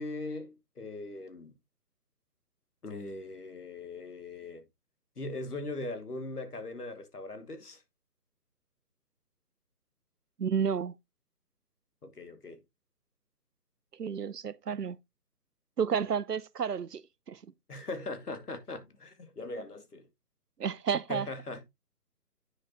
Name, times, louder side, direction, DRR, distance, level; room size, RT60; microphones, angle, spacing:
voice 1, 0.0-1.6 2.8-4.6 5.2-7.8 12.0-12.6 17.7-20.1 21.1-21.6, left 2 dB, 75° left, 2.5 m, -40 dB
voice 2, 10.4-10.9 14.0-15.0 15.8-17.0 17.3-17.4 20.6-21.3, right 7 dB, 80° right, 0.8 m, -31 dB
9.7 x 6.9 x 3.0 m
figure-of-eight pair, 145°, 47 cm